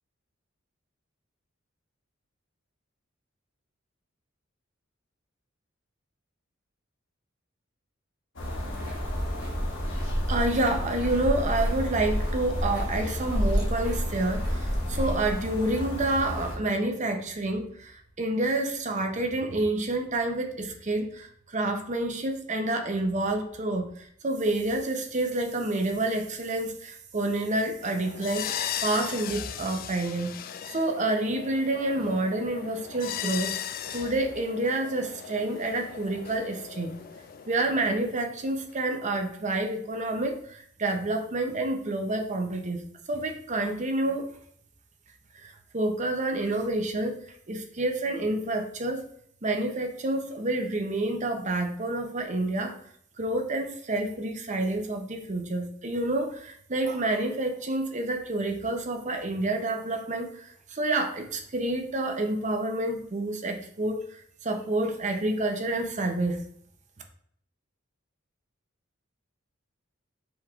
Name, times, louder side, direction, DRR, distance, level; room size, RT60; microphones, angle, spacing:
sound 1, 8.4-16.6, left 1 dB, 65° left, 1.2 m, -34 dB
sound 2, 8.4-15.3, equal, 20° right, 1.8 m, -30 dB
voice 1, 10.3-28.5 28.8-30.3 30.7-33.6 33.9-36.9 37.5-42.8 43.1-44.3 45.4-49.0 49.4-52.7 53.2-66.4, right 2 dB, 35° right, 4 dB, 0.7 m, -28 dB
sound 3, 27.8-38.8, left 9 dB, 45° left, 0.3 m, -38 dB
6.1 x 3.5 x 2.4 m, 0.64 s
head